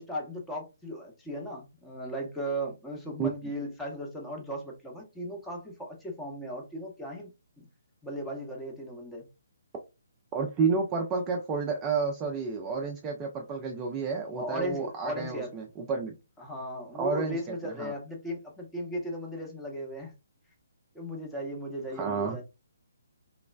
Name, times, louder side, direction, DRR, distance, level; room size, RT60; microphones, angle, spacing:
voice 1, 0.0-7.3 7.6-7.7 8.0-9.3 14.3-15.5 16.4-20.1 20.9-22.4, equal, 5° left, 0.8 m, -37 dB
voice 2, 10.3-16.1 17.0-17.9 21.9-22.4, right 5 dB, 20° right, 0.4 m, -30 dB
3.1 x 2.0 x 2.3 m
figure-of-eight pair, 135°, 0 cm